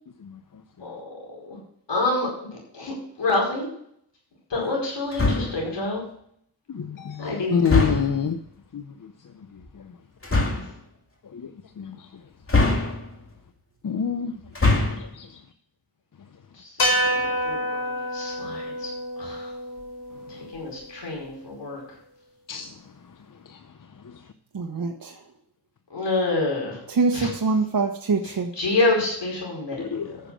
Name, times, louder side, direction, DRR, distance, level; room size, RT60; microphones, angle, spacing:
voice 1, 1.9-2.3 2.7-3.7 4.5-6.1 7.2-7.6 10.5-10.6 16.6-18.9 19.2-19.5 20.5-21.8 25.9-26.8 27.1-27.3 28.6-30.0, left 2 dB, 85° left, -2 dB, 5.0 m, -27 dB
sound 1, 5.1-5.7 7.6-8.3 10.2-10.7 12.5-13.3 14.4-15.1, left 3 dB, 30° left, 2.4 m, -22 dB
voice 2, 6.7-8.4 8.7-9.1 9.5-9.9 11.3-11.5 11.8-12.1 13.8-14.4 14.9-15.4 22.5-22.8 23.5-23.6 24.0-24.2 29.8-30.2, left 7 dB, 50° left, 9 dB, 0.7 m, -28 dB
sound 2, 16.8-21.1, equal, 65° left, 3.8 m, -28 dB
voice 3, 24.5-24.9 26.9-28.5, right 4 dB, 55° right, 2 dB, 1.2 m, -24 dB
10.0 x 6.9 x 6.3 m, 0.67 s
cardioid pair, 50°, 41 cm